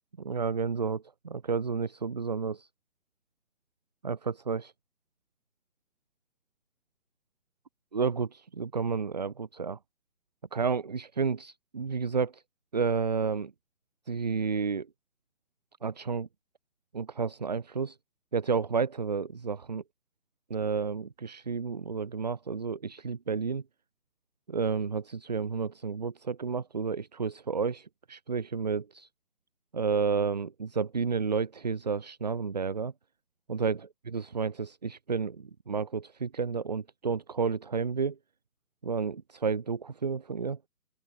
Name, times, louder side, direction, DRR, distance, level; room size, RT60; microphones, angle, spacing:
voice 1, 0.2-2.7 4.0-4.7 7.9-9.8 10.5-12.4 12.7-13.5 14.1-14.9 15.8-16.3 16.9-18.0 18.3-19.8 20.5-23.6 24.5-29.1 29.7-32.9 33.5-33.8 34.1-38.1 38.8-40.6, right 5 dB, 25° right, 1.7 m, -31 dB
open air
hypercardioid pair, 175°, 46 cm